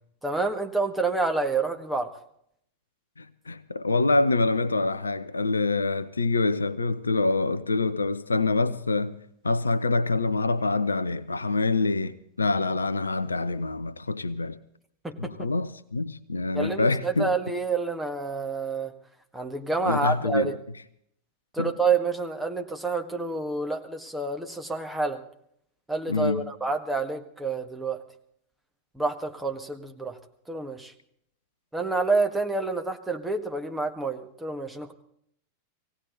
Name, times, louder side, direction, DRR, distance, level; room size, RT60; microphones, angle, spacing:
voice 1, 0.2-2.1 15.0-15.5 16.5-18.9 19.3-20.6 21.5-25.2 25.9-28.0 28.9-30.2 30.5-30.9 31.7-34.9, right 3 dB, 5° right, 1.7 m, -28 dB
voice 2, 3.2-9.2 9.4-14.6 15.2-17.3 19.9-20.6 21.6-21.7 26.1-26.5, left 3 dB, 75° left, 0.7 m, -26 dB
19.0 x 17.0 x 3.9 m
figure-of-eight pair, 90°, 0 cm